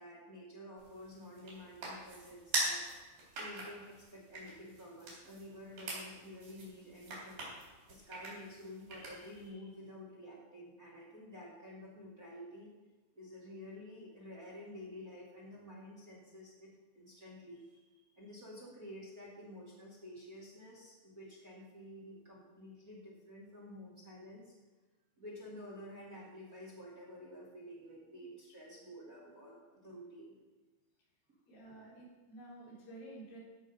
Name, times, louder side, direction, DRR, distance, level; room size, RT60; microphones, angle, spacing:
voice 1, 0.0-2.8 3.4-7.5 7.9-12.7 13.1-24.5 25.2-30.4 31.7-32.0, left 1 dB, 30° right, -5 dB, 2.0 m, -50 dB
sound 1, 0.8-9.5, right 2 dB, 65° right, 5.2 m, -43 dB
voice 2, 31.5-33.4, right 2 dB, 90° left, -8 dB, 6.2 m, -51 dB
15.5 x 6.4 x 5.3 m, 1.2 s
omnidirectional pair, 4.5 m